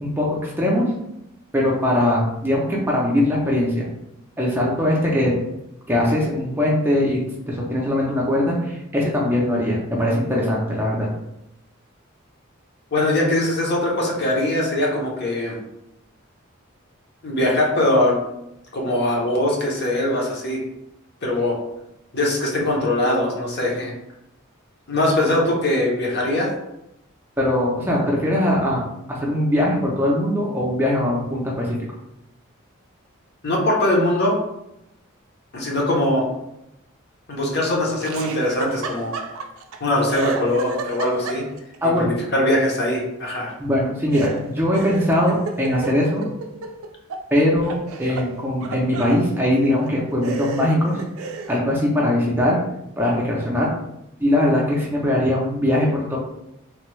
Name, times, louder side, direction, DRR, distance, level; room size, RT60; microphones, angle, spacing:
voice 1, 0.0-0.9 1.5-3.9 4.4-5.3 5.9-7.2 7.5-11.1 27.4-28.8 29.1-31.8 41.8-42.1 43.6-46.2 47.3-51.0 51.5-52.6 53.0-53.7 54.2-56.2, left 1 dB, 10° right, -3 dB, 0.5 m, -21 dB
voice 2, 12.9-15.6 17.2-18.2 18.7-20.6 21.2-21.6 22.1-23.9 24.9-26.5 33.4-34.3 35.5-36.3 37.3-39.1 39.8-41.4 42.0-43.5, left 1 dB, 50° left, -2 dB, 0.8 m, -21 dB
Laughter, 38.0-39.8 40.1-41.8 44.1-47.2 47.6-49.2 49.8-49.9 50.2-51.6, right 4 dB, 75° right, 0.4 m, -32 dB
3.3 x 2.2 x 3.1 m, 0.85 s
head